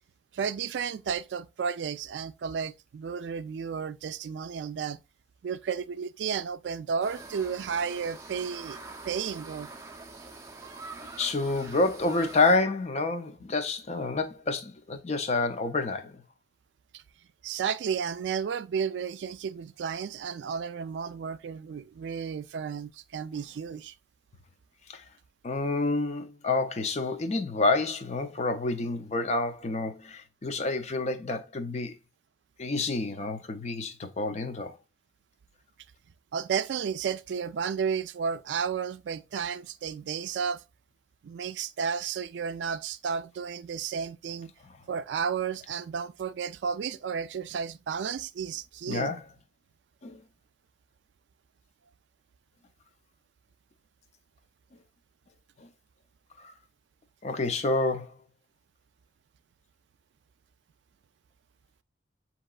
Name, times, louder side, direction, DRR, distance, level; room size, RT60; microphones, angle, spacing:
voice 1, 0.3-5.0 5.4-8.8 9.0-9.7 16.9-17.0 17.4-23.9 36.3-40.6 41.2-44.5 44.9-49.1, right 6 dB, 80° right, 0.3 m, -32 dB
sound 1, 7.0-12.6, right 3 dB, 15° right, 0.5 m, -45 dB
voice 2, 11.2-16.2 24.9-25.0 25.4-32.0 32.6-34.8 48.9-49.2 50.0-50.2 55.6-55.7 56.4-56.5 57.2-58.1, left 3 dB, 40° left, 0.5 m, -28 dB
7.4 x 2.9 x 2.3 m
head